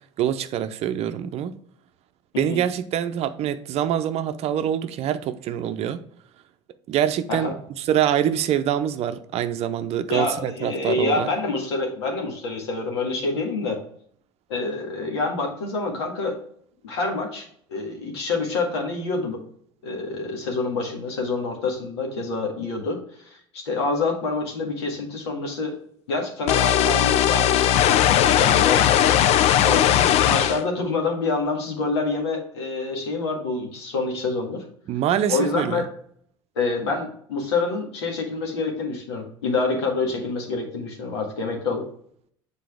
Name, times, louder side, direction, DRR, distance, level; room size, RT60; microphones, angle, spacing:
voice 1, 0.2-1.5 2.4-6.0 6.9-11.3 34.9-35.8, right 10 dB, 50° right, 0.6 m, -25 dB
voice 2, 10.1-13.8 14.5-16.4 16.8-19.4 19.8-23.0 23.2-25.8 26.1-29.2 29.6-34.6 35.3-35.9 36.5-41.8, left 3 dB, 80° left, 1.7 m, -27 dB
sound 1, 26.5-30.6, left 11 dB, 50° left, 0.5 m, -18 dB
7.6 x 4.0 x 3.5 m
hypercardioid pair, 75°, 14 cm